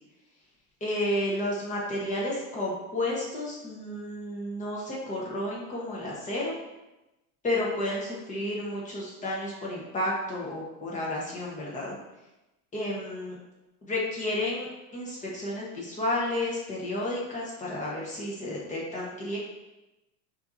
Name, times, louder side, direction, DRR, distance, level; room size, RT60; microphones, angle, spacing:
voice 1, 0.8-6.5 7.4-12.0 12.7-13.4 13.8-14.7 14.9-19.4, left 1 dB, 15° left, -5 dB, 1.0 m, -31 dB
5.4 x 2.8 x 2.6 m, 0.99 s
supercardioid pair, 135°, 48 cm